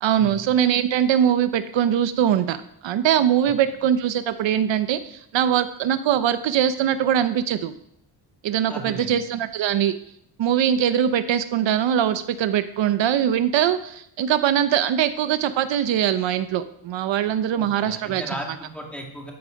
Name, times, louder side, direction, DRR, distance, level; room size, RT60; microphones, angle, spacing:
voice 1, 0.0-2.6 2.8-7.7 8.4-9.9 10.4-18.2, right 10 dB, 75° right, 11 dB, 0.9 m, -22 dB
voice 2, 8.7-9.2 17.5-19.3, equal, 5° left, 0 dB, 2.4 m, -36 dB
13.5 x 9.5 x 5.2 m, 0.71 s
cardioid pair, 165°, 45 cm